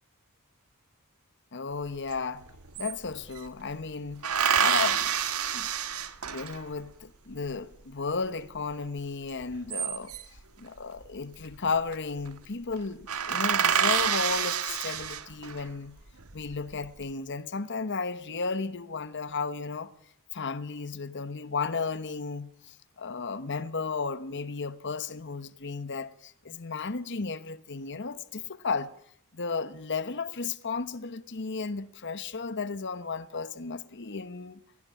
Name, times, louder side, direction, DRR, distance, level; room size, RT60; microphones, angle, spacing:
voice 1, 1.5-2.5 2.8-4.3 4.6-5.1 5.5-5.7 6.3-10.2 10.6-16.0 16.3-19.9 20.3-28.9 29.3-34.6, left 4 dB, 55° left, 1.1 m, -34 dB
sound 1, 2.1-2.2 2.4-3.5 4.2-6.8 9.4-10.4 11.6-11.9 12.3-12.4 12.7-12.8 13.1-15.6 16.2-16.9, right 8 dB, 70° right, 1.7 m, -28 dB
21.5 x 17.5 x 8.4 m
head